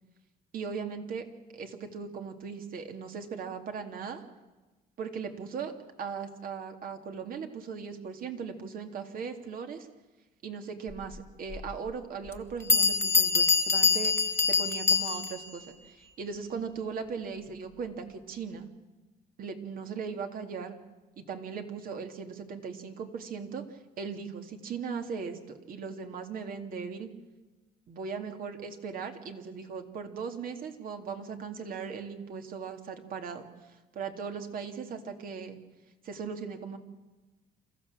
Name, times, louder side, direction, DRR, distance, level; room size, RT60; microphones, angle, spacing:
voice 1, 0.5-1.2 1.5-4.2 5.0-5.7 6.0-9.9 10.4-18.7 19.4-20.8 21.2-27.1 27.9-33.5 33.9-35.6 36.0-36.8, right 6 dB, 55° right, 5 dB, 2.5 m, -38 dB
Bell, 11.5-11.6 12.3-12.4 12.7-15.5, left 5 dB, 15° left, 1.4 m, -25 dB
28.0 x 14.5 x 7.4 m, 1.2 s
cardioid pair, 110°, 17 cm